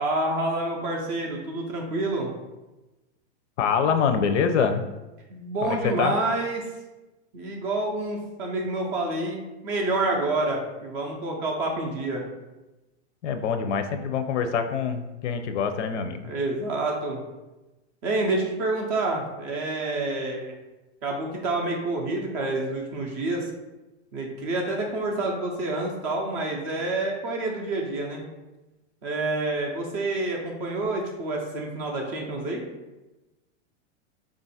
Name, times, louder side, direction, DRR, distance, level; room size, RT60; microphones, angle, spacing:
voice 1, 0.0-2.3 5.3-6.7 7.3-12.2 16.2-17.2 18.0-20.5 21.0-23.5 24.1-28.2 29.0-32.6, right 2 dB, 25° right, 1 dB, 0.4 m, -28 dB
voice 2, 3.6-4.9 5.6-6.2 13.2-16.3, left 6 dB, 80° left, 8 dB, 0.6 m, -25 dB
3.6 x 2.5 x 4.1 m, 1.1 s
supercardioid pair, 155°, 35 cm